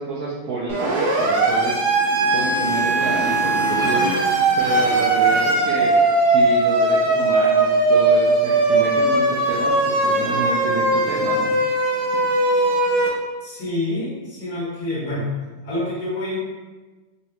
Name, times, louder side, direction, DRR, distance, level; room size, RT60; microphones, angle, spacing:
voice 1, 0.0-5.9 6.3-11.5, right 3 dB, 70° right, -6 dB, 0.9 m, -29 dB
Siren, 0.7-13.1, right 2 dB, 90° right, 1.4 m, -19 dB
Motorcycle, 1.7-6.3, left 2 dB, 60° left, 0.6 m, -30 dB
voice 2, 13.4-15.3 15.6-16.4, left 1 dB, 85° left, -11 dB, 1.8 m, -27 dB
4.0 x 2.4 x 2.9 m, 1.3 s
omnidirectional pair, 1.7 m